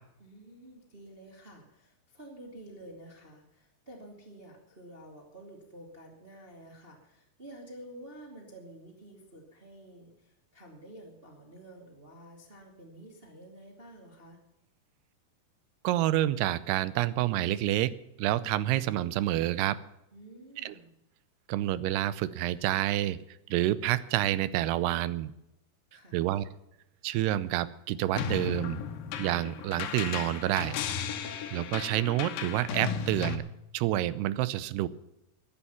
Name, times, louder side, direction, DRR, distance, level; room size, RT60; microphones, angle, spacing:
voice 1, 0.2-14.4 20.1-20.9 25.9-26.2, right 1 dB, 20° right, -1 dB, 2.0 m, -50 dB
voice 2, 15.8-17.9 18.2-19.8 20.6-20.7 21.5-23.2 23.5-25.3 26.1-26.4 27.0-28.8 29.2-30.7 31.5-33.4 33.7-34.9, right 14 dB, 80° right, 16 dB, 2.6 m, -28 dB
sound 1, 28.2-33.4, left 7 dB, 65° left, 2.6 m, -35 dB
14.5 x 10.0 x 7.2 m, 0.85 s
omnidirectional pair, 4.9 m